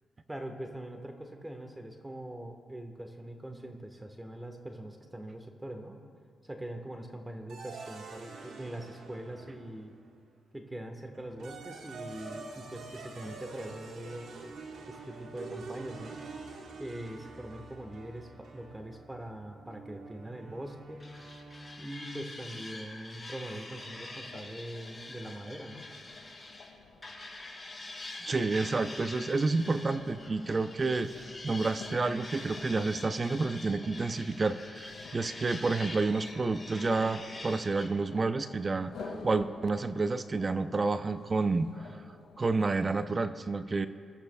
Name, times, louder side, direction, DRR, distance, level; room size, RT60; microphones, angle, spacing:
voice 1, 0.3-6.0 6.4-9.9 10.5-14.4 14.9-16.2 16.8-21.1 21.8-25.9, right 1 dB, 15° right, 4 dB, 1.5 m, -42 dB
sound 1, 7.5-10.1 11.1-22.3, right 3 dB, 80° right, 1.6 m, -46 dB
sound 2, 21.0-26.7 27.0-37.9, left 2 dB, 25° left, 3.8 m, -45 dB
sound 3, 23.7-42.9, left 3 dB, 75° left, 2.2 m, -51 dB
voice 2, 28.2-42.0 42.4-43.9, right 3 dB, 40° right, 11 dB, 0.7 m, -30 dB
23.0 x 13.5 x 2.4 m, 2.3 s
supercardioid pair, 55°, 0 cm